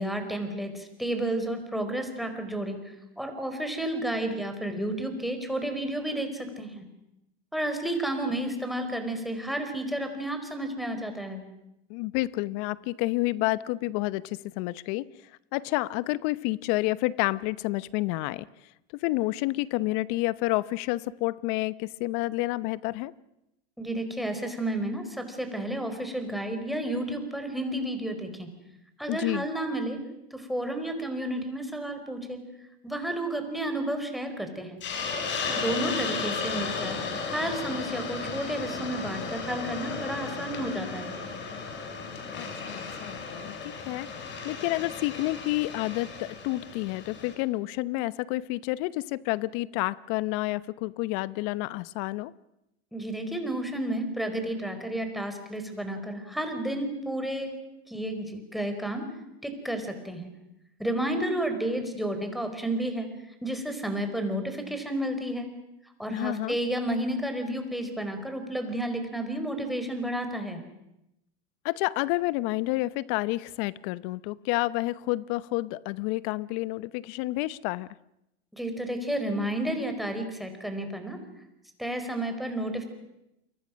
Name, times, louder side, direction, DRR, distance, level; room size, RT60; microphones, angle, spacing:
voice 1, 0.0-2.8 3.2-6.9 7.5-11.4 23.8-28.5 29.0-30.0 30.3-32.4 32.8-34.8 35.4-37.0 37.3-41.1 52.9-57.6 57.9-59.1 59.4-60.3 60.8-63.1 63.4-65.5 66.0-70.6 78.5-81.2 81.8-82.8, right 1 dB, ahead, 6 dB, 4.7 m, -31 dB
voice 2, 11.9-15.1 15.5-18.5 19.0-23.1 29.1-29.5 42.4-44.1 44.4-52.3 66.1-66.6 71.6-77.9, left 19 dB, 50° left, 19 dB, 0.9 m, -29 dB
Hiss, 34.8-47.3, left 5 dB, 35° left, 5.5 m, -34 dB
29.0 x 24.0 x 6.4 m, 0.87 s
hypercardioid pair, 110°, 32 cm